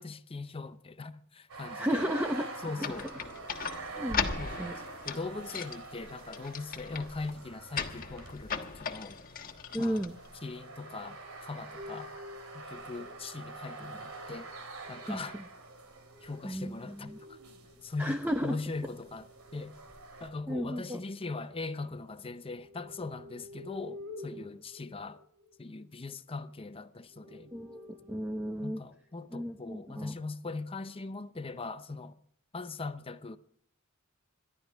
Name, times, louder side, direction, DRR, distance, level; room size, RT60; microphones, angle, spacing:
voice 1, 0.0-2.1 2.6-3.5 4.4-4.6 5.0-9.2 9.8-10.0 10.4-12.1 12.5-14.5 14.9-15.4 16.2-17.4 17.8-19.7 20.2-25.2 25.6-27.5 28.6-32.2 32.5-33.4, left 3 dB, 25° left, 0.7 m, -40 dB
sound 1, 1.5-20.3, right 2 dB, 85° right, 2.8 m, -45 dB
voice 2, 1.7-2.5 2.8-2.9 4.0-4.7 9.7-10.1 15.1-15.2 16.4-17.2 18.0-18.5 20.5-21.0 27.5-28.8 29.3-30.2, equal, 10° right, 0.9 m, -33 dB
sound 2, 2.8-10.6, left 6 dB, 45° left, 1.3 m, -39 dB
sound 3, 11.7-15.0 16.6-21.7 22.1-26.6 27.0-28.8 29.5-30.0, left 2 dB, 65° right, 4.5 m, -51 dB
28.0 x 12.5 x 3.5 m
head